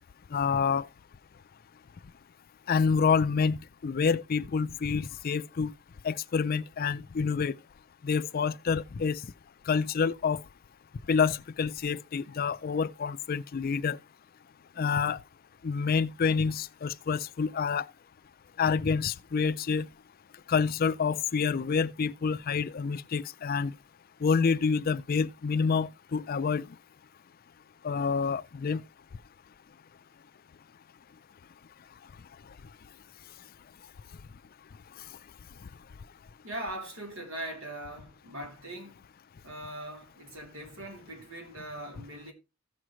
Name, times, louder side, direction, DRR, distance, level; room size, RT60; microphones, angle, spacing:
voice 1, 0.3-0.9 2.7-5.7 6.0-7.6 8.0-9.3 9.7-10.4 11.1-14.0 14.8-15.2 15.6-17.9 18.6-19.9 20.5-23.7 24.2-26.8 27.8-28.8, left 5 dB, 45° left, 0.4 m, -28 dB
voice 2, 36.4-39.0 39.4-42.3, right 1 dB, 80° right, 3.5 m, -41 dB
15.5 x 6.2 x 3.1 m
head